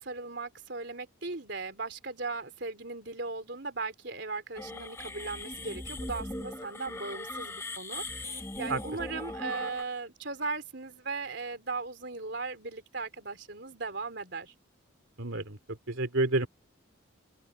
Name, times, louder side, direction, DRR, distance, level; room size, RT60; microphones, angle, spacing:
voice 1, 0.0-14.5, right 3 dB, 60° right, 3.9 m, -38 dB
sound 1, 4.6-9.8, left 2 dB, 15° left, 0.8 m, -39 dB
voice 2, 15.2-16.5, right 2 dB, 85° right, 2.7 m, -29 dB
open air
head